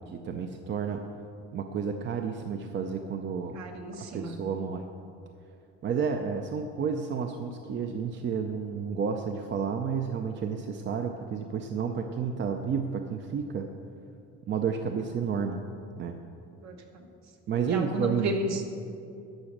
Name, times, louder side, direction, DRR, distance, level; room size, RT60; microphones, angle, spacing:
voice 1, 0.1-1.1 1.5-3.6 4.1-4.8 5.8-13.7 14.5-15.6 16.0-16.2 17.5-18.3, right 6 dB, 35° right, 5 dB, 0.5 m, -31 dB
voice 2, 3.5-4.4 16.6-16.8 17.7-18.7, right 1 dB, 55° right, 4 dB, 1.3 m, -33 dB
11.5 x 5.2 x 7.3 m, 2.6 s
cardioid pair, 135°, 31 cm